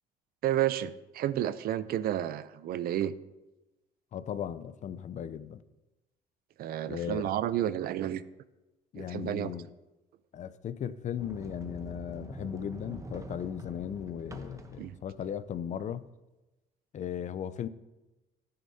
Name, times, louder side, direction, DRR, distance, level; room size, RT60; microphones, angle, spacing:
voice 1, 0.4-3.1 6.6-8.2 9.0-9.5 14.8-14.9, right 12 dB, 65° right, 15 dB, 0.5 m, -31 dB
voice 2, 4.1-5.6 6.9-7.2 8.9-9.7 10.3-16.0 16.9-17.7, left 9 dB, 45° left, 14 dB, 0.5 m, -37 dB
Sliding door, 11.2-16.0, right 2 dB, 20° right, 0.9 m, -46 dB
14.0 x 9.4 x 2.8 m, 1.0 s
cardioid pair, 110°, 17 cm